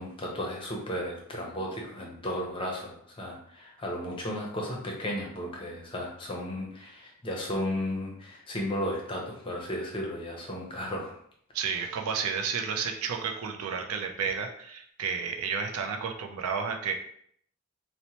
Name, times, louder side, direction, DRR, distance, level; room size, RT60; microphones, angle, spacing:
voice 1, 0.0-11.2, left 1 dB, 25° left, -1 dB, 0.6 m, -34 dB
voice 2, 11.5-16.9, right 6 dB, 75° right, 4 dB, 0.4 m, -31 dB
2.9 x 2.1 x 2.8 m, 0.65 s
head